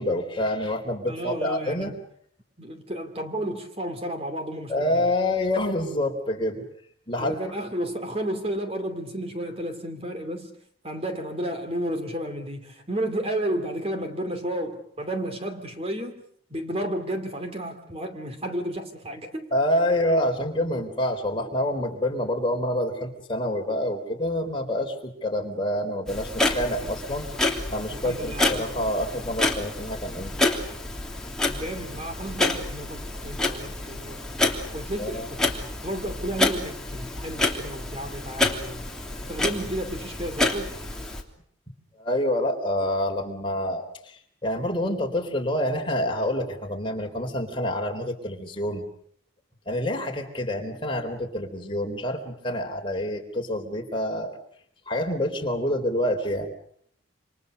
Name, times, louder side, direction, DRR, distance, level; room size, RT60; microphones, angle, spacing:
voice 1, 0.0-1.9 4.7-6.6 7.1-7.3 19.5-27.3 27.7-30.3 35.0-35.3 42.0-48.9 49.7-54.3 54.9-56.5, left 1 dB, 25° left, 2 dB, 3.9 m, -27 dB
voice 2, 1.1-1.9 2.6-5.1 7.2-10.6 10.8-16.2 16.5-19.5 26.8-26.9 27.9-28.7 31.4-34.2 34.7-38.9 39.3-40.7, right 1 dB, 30° right, 7 dB, 2.7 m, -32 dB
Clock, 26.1-41.2, left 2 dB, 5° left, 3.2 m, -28 dB
28.5 x 27.0 x 6.7 m, 0.64 s
head